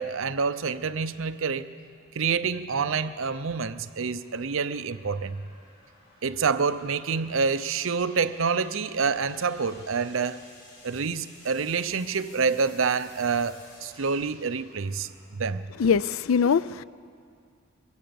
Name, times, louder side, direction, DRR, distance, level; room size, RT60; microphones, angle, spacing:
voice 1, 0.0-1.7 2.1-5.4 6.2-10.4 10.8-15.6, right 5 dB, 70° right, 0.6 m, -27 dB
sound 1, 1.2-16.1, left 1 dB, 50° left, 5.9 m, -55 dB
voice 2, 15.8-16.8, left 6 dB, 75° left, 0.4 m, -22 dB
22.5 x 17.0 x 7.0 m
head